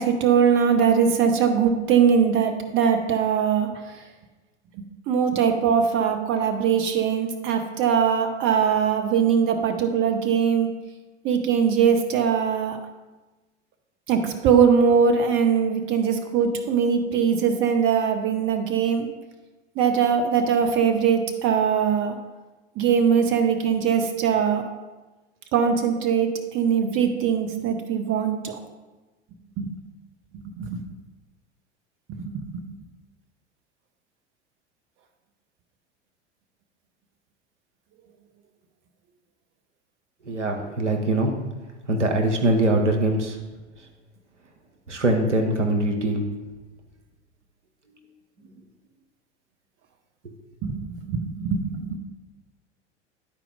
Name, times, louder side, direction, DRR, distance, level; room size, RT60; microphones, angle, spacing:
voice 1, 0.0-3.7 4.7-10.7 11.2-12.8 14.1-19.1 19.8-22.1 22.8-24.6 25.5-28.6 29.6-29.7 30.5-30.8 32.1-32.7 50.6-52.0, right 7 dB, 35° right, 5 dB, 0.9 m, -21 dB
voice 2, 40.2-41.3 41.9-43.4 44.9-46.2 50.2-50.3, right 1 dB, 85° right, 3 dB, 1.1 m, -22 dB
11.0 x 4.4 x 4.0 m, 1.2 s
figure-of-eight pair, 80°, 35 cm